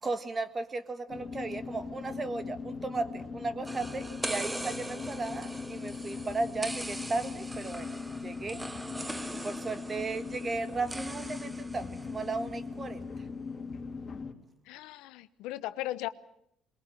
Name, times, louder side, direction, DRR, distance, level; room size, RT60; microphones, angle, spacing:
voice 1, 0.0-8.6 9.3-13.1, right 3 dB, 30° right, 11 dB, 1.7 m, -35 dB
sound 1, 1.1-14.3, left 4 dB, 35° left, 2.9 m, -40 dB
sound 2, 3.7-12.4, right 1 dB, 10° right, 0.9 m, -41 dB
voice 2, 14.7-16.1, left 15 dB, 85° left, 13 dB, 0.9 m, -37 dB
22.5 x 21.0 x 7.6 m, 0.75 s
cardioid pair, 95°, 0 cm